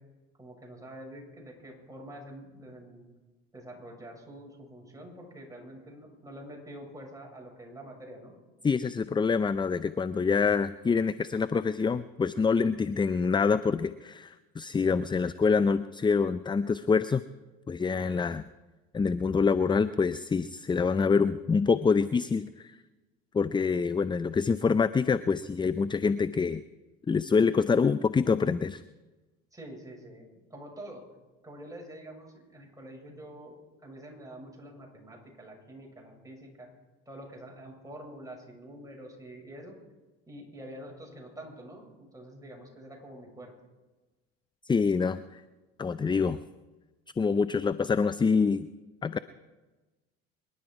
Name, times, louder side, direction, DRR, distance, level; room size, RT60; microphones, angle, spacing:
voice 1, 0.4-3.1 3.5-8.3 29.5-31.0 31.4-33.5 33.8-36.7 37.0-39.8 40.3-43.5, right 1 dB, 10° right, -1 dB, 6.8 m, -46 dB
voice 2, 8.6-17.2 17.7-18.4 18.9-22.8 23.3-26.6 27.1-28.8 44.6-45.4 45.8-46.4 47.2-48.7 49.0-49.2, left 5 dB, 15° left, 15 dB, 0.5 m, -26 dB
26.0 x 11.5 x 4.8 m, 1.2 s
hypercardioid pair, 75°, 31 cm